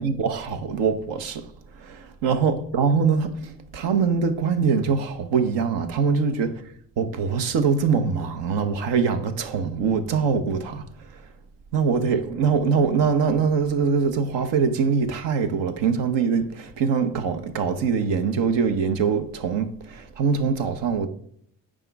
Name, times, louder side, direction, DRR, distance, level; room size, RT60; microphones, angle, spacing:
voice 1, 0.0-6.5 7.0-11.3 11.7-21.1, right 5 dB, 70° right, 1.0 m, -23 dB
9.1 x 5.1 x 3.4 m
supercardioid pair, 55°, 45 cm